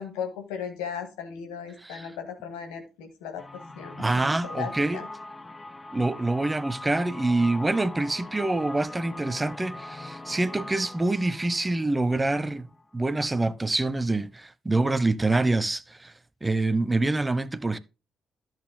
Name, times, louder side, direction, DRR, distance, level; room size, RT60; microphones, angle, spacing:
voice 1, 0.0-3.4 3.8-5.1, left 7 dB, 70° left, 2.0 m, -36 dB
sound 1, 3.4-13.1, left 2 dB, 25° left, 1.0 m, -42 dB
voice 2, 4.0-5.0 5.9-16.1 16.4-17.8, right 2 dB, 20° right, 0.8 m, -26 dB
13.5 x 7.7 x 2.2 m
figure-of-eight pair, 45°, 0 cm